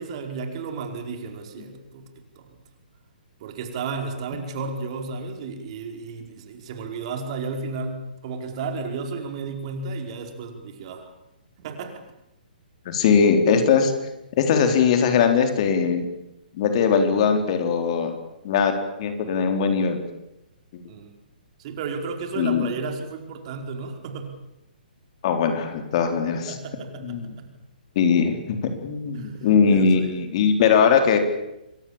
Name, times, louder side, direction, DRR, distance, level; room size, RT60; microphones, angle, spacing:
voice 1, 0.0-2.1 2.4-2.5 3.4-11.0 11.6-12.0 20.9-21.1 21.6-24.3 26.5-27.5 29.1-30.1, right 4 dB, 40° right, 4 dB, 4.9 m, -33 dB
voice 2, 12.9-13.9 14.4-16.1 16.5-18.1 18.4-18.7 19.0-20.0 20.7-20.8 22.4-22.7 25.2-26.6 27.0-27.3 28.0-28.6 28.8-31.2, left 6 dB, 40° left, 6 dB, 4.0 m, -20 dB
28.0 x 23.0 x 7.4 m, 0.89 s
figure-of-eight pair, 125°, 5 cm